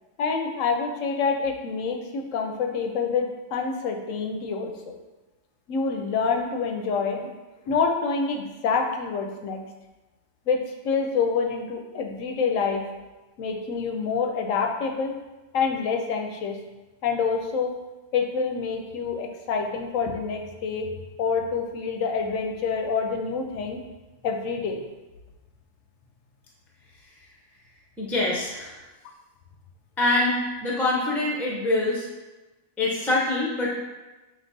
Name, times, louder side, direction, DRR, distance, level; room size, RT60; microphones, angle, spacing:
voice 1, 0.2-5.0 5.7-7.3 7.7-9.6 10.5-12.8 13.4-15.1 15.5-16.6 17.0-17.7 18.1-20.9 21.2-23.8 24.2-24.8, left 5 dB, 85° left, 3 dB, 1.0 m, -27 dB
voice 2, 28.0-28.8 30.0-32.1 32.8-33.8, left 2 dB, ahead, -3 dB, 0.4 m, -24 dB
5.2 x 2.9 x 2.6 m, 1.1 s
omnidirectional pair, 1.3 m